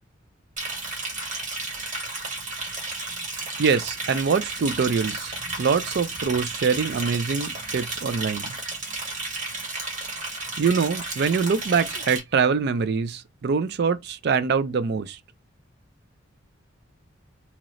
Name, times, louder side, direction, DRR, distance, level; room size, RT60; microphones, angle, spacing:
Liquid, 0.6-12.2, right 3 dB, 40° right, 1.2 m, -33 dB
voice 1, 3.6-5.3 5.6-8.6 10.6-15.2, right 5 dB, 55° right, 0.4 m, -24 dB
2.9 x 2.5 x 3.0 m
head